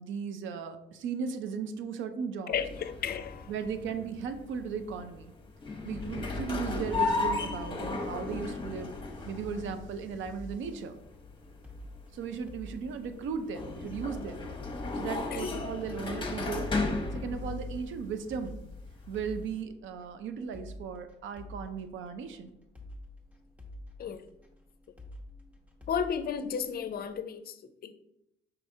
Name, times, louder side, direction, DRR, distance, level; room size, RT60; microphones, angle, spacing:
voice 1, 0.0-2.5 3.5-5.3 5.8-8.9 9.3-11.0 12.1-14.5 14.9-16.7 17.1-18.6 19.1-22.6, right 6 dB, 75° right, 9 dB, 0.5 m, -36 dB
voice 2, 2.5-3.5 15.3-15.6 24.0-24.3 25.9-27.9, left 7 dB, 50° left, 10 dB, 0.5 m, -34 dB
sound 1, 2.5-19.6, left 3 dB, 25° left, 0.9 m, -36 dB
sound 2, 9.4-27.2, left 1 dB, 5° right, 0.8 m, -49 dB
5.6 x 3.4 x 2.7 m, 0.83 s
cardioid pair, 90°, 20 cm